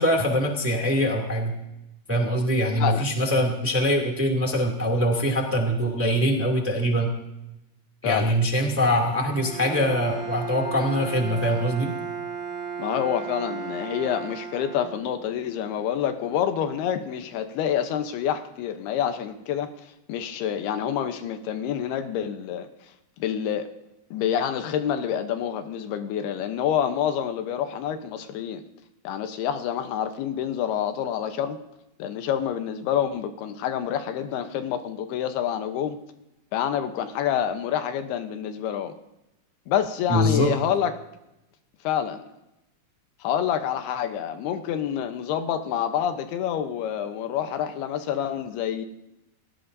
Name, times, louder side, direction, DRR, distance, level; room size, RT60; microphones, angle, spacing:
voice 1, 0.0-1.5 2.1-7.1 8.0-11.9 40.1-40.5, equal, 5° right, 1 dB, 1.6 m, -23 dB
voice 2, 2.8-3.1 8.0-8.3 12.8-19.7 20.1-22.7 23.2-23.7 24.1-28.6 29.0-31.6 32.0-36.0 36.5-38.9 39.7-40.9 41.8-42.2 43.2-48.9, left 9 dB, 85° left, 8 dB, 3.0 m, -27 dB
Bowed string instrument, 9.2-15.4, right 6 dB, 30° right, 6.0 m, -35 dB
30.0 x 17.0 x 2.7 m, 0.92 s
omnidirectional pair, 4.4 m